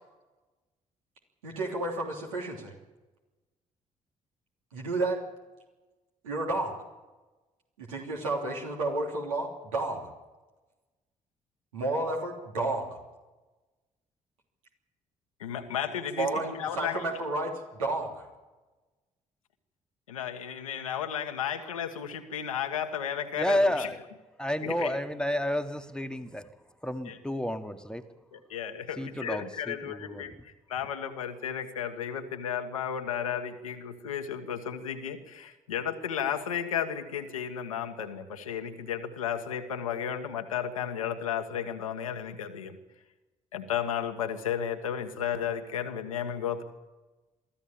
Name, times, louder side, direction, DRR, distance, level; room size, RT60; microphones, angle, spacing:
voice 1, 1.4-2.7 4.7-5.2 6.2-6.8 7.8-10.1 11.7-13.0 16.2-18.3, right 2 dB, 80° right, 0 dB, 3.3 m, -31 dB
voice 2, 15.4-17.0 20.1-23.9 24.6-24.9 27.0-27.2 28.3-30.3 30.7-42.8 43.5-46.6, left 8 dB, 80° left, 6 dB, 1.4 m, -33 dB
voice 3, 23.4-24.0 24.4-26.5 26.8-28.0 29.0-30.2, left 1 dB, 5° left, 7 dB, 1.6 m, -30 dB
23.5 x 14.5 x 8.8 m, 1.2 s
figure-of-eight pair, 45°, 17 cm